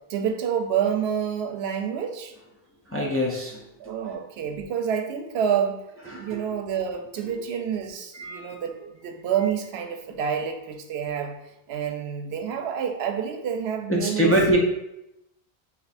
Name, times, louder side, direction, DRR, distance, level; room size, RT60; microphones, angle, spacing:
voice 1, 0.1-2.3 3.8-5.8 6.1-8.8 9.0-11.4 11.7-14.4, right 8 dB, 90° right, 5 dB, 0.8 m, -28 dB
voice 2, 2.9-3.6 6.1-6.3 8.2-8.6 13.9-14.6, right 1 dB, 25° left, -2 dB, 0.3 m, -24 dB
3.4 x 3.0 x 4.1 m, 0.89 s
omnidirectional pair, 1.0 m